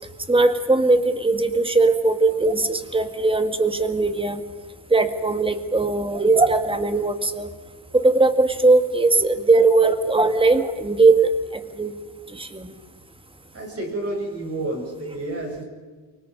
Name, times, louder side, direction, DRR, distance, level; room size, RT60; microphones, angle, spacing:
voice 1, 0.3-4.4 4.9-7.5 7.9-11.9 12.3-12.7, right 3 dB, 15° right, 8 dB, 1.8 m, -19 dB
voice 2, 13.5-15.6, right 2 dB, 35° right, 0 dB, 7.9 m, -30 dB
29.0 x 25.0 x 5.2 m, 1.4 s
cardioid pair, 130°, 40 cm